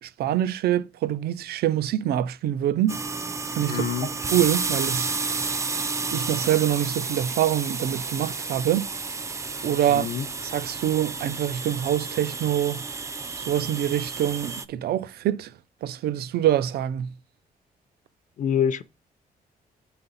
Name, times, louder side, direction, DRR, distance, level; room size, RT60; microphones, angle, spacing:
voice 1, 0.0-3.0 3.5-3.9 4.3-5.1 5.4-5.5 6.1-8.9 9.6-10.1 10.4-12.8 13.4-15.5 15.8-17.1, right 11 dB, 85° right, 0.4 m, -25 dB
sound 1, 2.9-14.7, right 4 dB, 20° right, 0.3 m, -31 dB
voice 2, 3.7-4.1 9.9-10.3 18.4-18.8, left 8 dB, 50° left, 0.4 m, -26 dB
8.5 x 4.1 x 4.0 m
cardioid pair, 145°, 16 cm